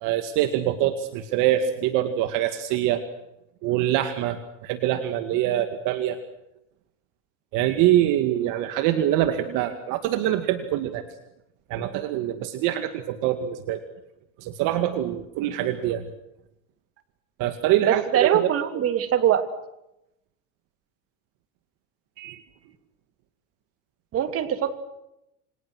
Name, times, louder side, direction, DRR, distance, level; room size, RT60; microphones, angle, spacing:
voice 1, 0.0-3.0 3.6-6.2 7.5-11.0 11.7-13.8 14.4-16.0 17.4-18.5 22.2-22.4, right 12 dB, 55° right, 8 dB, 2.2 m, -24 dB
voice 2, 17.8-19.4 24.1-24.7, right 10 dB, 40° right, 9 dB, 3.0 m, -22 dB
29.0 x 25.0 x 6.4 m, 0.87 s
supercardioid pair, 135°, 37 cm